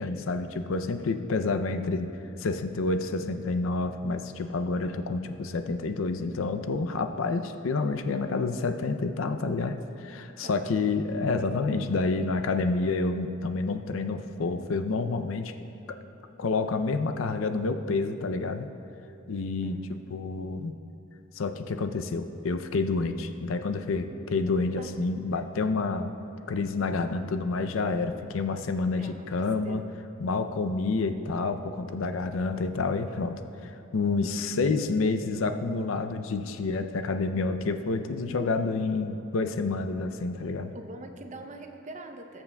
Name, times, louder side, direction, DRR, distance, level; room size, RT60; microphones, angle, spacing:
voice 1, 0.0-2.1 2.4-15.5 15.9-16.0 16.4-18.7 19.3-19.8 20.1-20.7 21.3-26.1 26.5-29.8 30.2-40.7, left 3 dB, 80° left, 8 dB, 0.5 m, -29 dB
voice 2, 10.4-10.9 19.6-20.0 24.8-25.0 29.0-29.2 29.6-29.9 40.4-42.4, right 2 dB, 35° right, 5 dB, 0.6 m, -43 dB
18.5 x 7.1 x 2.2 m, 2.9 s
head